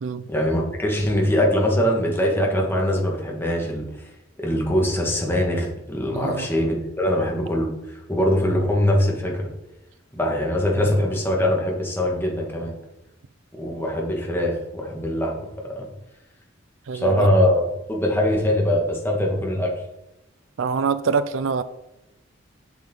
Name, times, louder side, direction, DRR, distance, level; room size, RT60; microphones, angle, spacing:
voice 1, 0.3-3.8 4.4-9.5 10.1-12.7 13.5-15.3 15.7-15.9 16.9-17.6 17.9-19.7, left 1 dB, 10° left, -2 dB, 1.7 m, -22 dB
voice 2, 6.1-6.5 16.9-17.3 20.6-21.6, right 5 dB, 75° right, 14 dB, 0.4 m, -25 dB
7.5 x 7.4 x 3.8 m, 0.90 s
head